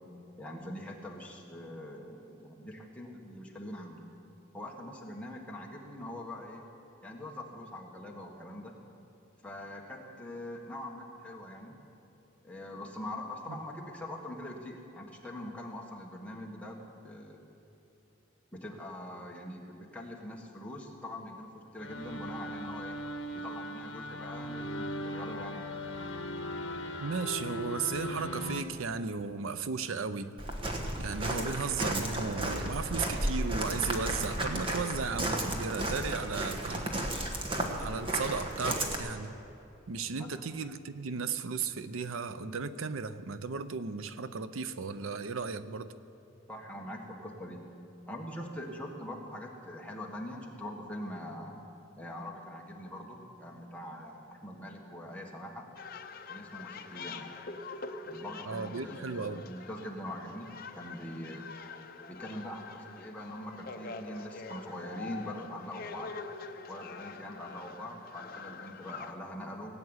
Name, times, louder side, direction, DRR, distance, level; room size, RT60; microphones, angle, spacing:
voice 1, 0.4-4.1 4.5-6.6 7.0-8.8 9.4-11.8 12.4-17.4 18.5-23.0 23.3-25.8 40.1-40.5 46.5-47.7 48.1-51.6 52.0-55.7 56.3-57.3 58.0-60.5 60.7-61.6 62.1-66.2 66.7-69.8, left 1 dB, 5° left, -1 dB, 1.6 m, -43 dB
sound 1, 21.8-28.6, left 1 dB, 65° left, 1.2 m, -39 dB
voice 2, 27.0-30.4 31.0-36.9 37.7-39.3 39.9-45.9 58.5-59.4, right 5 dB, 90° right, 13 dB, 0.6 m, -35 dB
Walk footsteps, 30.4-39.0, right 1 dB, 25° right, 1.3 m, -33 dB
sound 2, 55.8-69.1, left 4 dB, 45° left, 0.7 m, -45 dB
18.5 x 8.6 x 8.0 m, 2.9 s
head